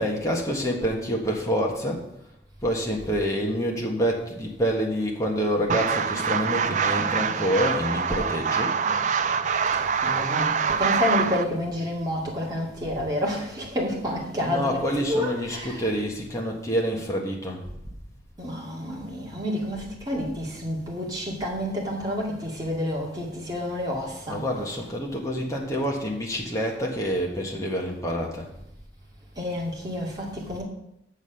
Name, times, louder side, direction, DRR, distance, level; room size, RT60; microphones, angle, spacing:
voice 1, 0.0-2.0 2.6-8.8 14.4-17.6 24.3-28.5, equal, 20° left, -1 dB, 1.5 m, -27 dB
sound 1, 5.7-11.4, right 6 dB, 40° right, 0.4 m, -25 dB
voice 2, 9.7-15.9 18.4-24.9 29.4-30.6, left 1 dB, 20° right, -4 dB, 2.2 m, -29 dB
7.3 x 6.5 x 6.5 m, 0.80 s
head